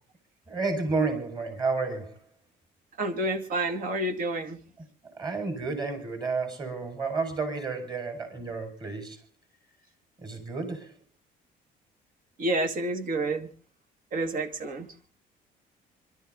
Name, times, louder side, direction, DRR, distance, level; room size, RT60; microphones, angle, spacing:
voice 1, 0.5-2.2 5.0-9.2 10.2-10.9, right 4 dB, 25° right, 5.1 m, -31 dB
voice 2, 3.0-4.6 12.4-13.5 14.1-14.9, right 2 dB, 55° right, 2.2 m, -29 dB
26.0 x 12.5 x 3.8 m
cardioid pair, 110°, 17 cm